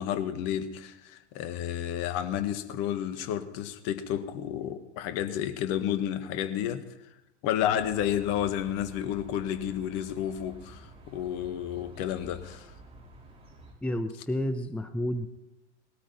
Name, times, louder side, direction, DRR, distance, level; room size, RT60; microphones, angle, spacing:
voice 1, 0.0-6.8 7.4-12.7, left 10 dB, 45° left, 1.6 m, -31 dB
sound 1, 7.7-13.7, right 2 dB, 15° right, 4.7 m, -50 dB
voice 2, 13.8-15.3, left 1 dB, 5° left, 0.9 m, -30 dB
20.5 x 13.5 x 4.5 m
figure-of-eight pair, 95°, 35 cm